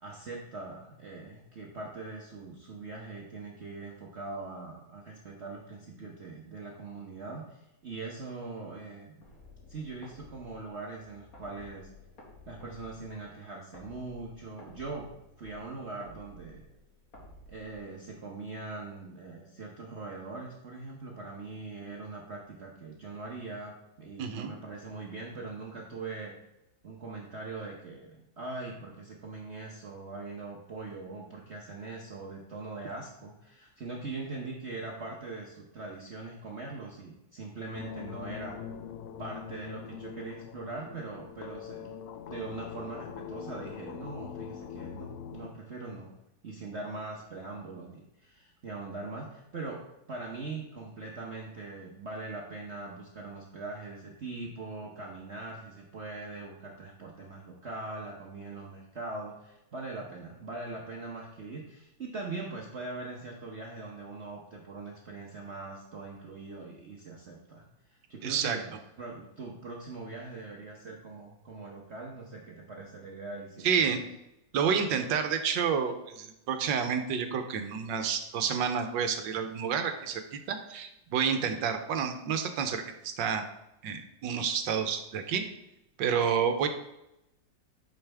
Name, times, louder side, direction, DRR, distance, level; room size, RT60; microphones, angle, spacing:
voice 1, 0.0-9.3 9.7-11.9 12.5-15.1 15.4-16.6 17.5-26.3 26.8-38.6 39.2-41.9 42.3-46.1 46.4-49.8 50.1-68.7 69.0-74.0, right 3 dB, 45° right, -2 dB, 1.0 m, -41 dB
sound 1, 9.2-18.3, left 2 dB, 50° left, 2.4 m, -54 dB
voice 2, 24.2-24.5 68.2-68.6 73.6-74.0 74.5-83.4 83.8-85.5 86.0-86.7, right 7 dB, 75° right, 7 dB, 1.4 m, -29 dB
sound 2, 37.7-45.5, left 8 dB, 70° left, 0.9 m, -42 dB
9.0 x 5.1 x 3.4 m, 0.88 s
omnidirectional pair, 2.0 m